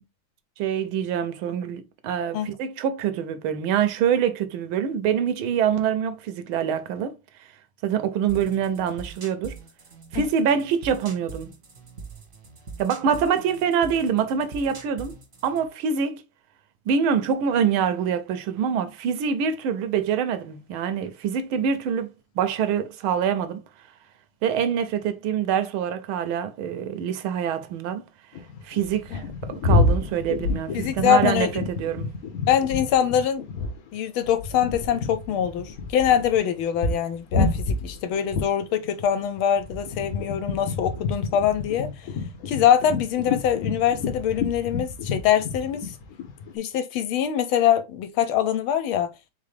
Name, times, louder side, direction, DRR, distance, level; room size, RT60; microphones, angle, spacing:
voice 1, 0.6-7.2 7.8-9.6 10.1-11.6 12.8-15.1 15.4-16.2 16.9-22.1 22.4-23.6 24.4-28.0 28.6-32.2, right 7 dB, 80° right, 1.4 m, -25 dB
sound 1, 8.3-15.7, right 4 dB, 35° right, 0.9 m, -42 dB
sound 2, 28.3-33.9 34.2-46.6, left 3 dB, 55° left, 1.1 m, -28 dB
voice 2, 30.7-31.5 32.5-33.5 33.9-41.9 42.5-45.9 46.5-49.1, left 9 dB, 80° left, 1.5 m, -23 dB
3.8 x 3.7 x 3.3 m
omnidirectional pair, 2.3 m